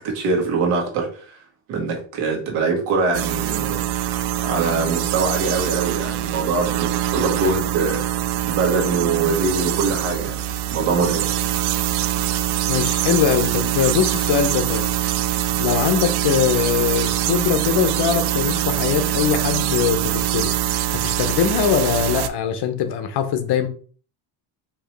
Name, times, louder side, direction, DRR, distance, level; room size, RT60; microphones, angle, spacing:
voice 1, 0.0-1.4 1.7-3.8 4.1-8.0 8.4-10.4 10.7-11.4, right 4 dB, 90° right, 1.7 m, -23 dB
sound 1, 3.1-22.3, right 12 dB, 55° right, 0.5 m, -23 dB
voice 2, 12.7-14.9 15.6-20.5 21.0-23.7, left 8 dB, 50° left, 0.9 m, -22 dB
4.6 x 2.9 x 3.2 m
cardioid pair, 120°, 50 cm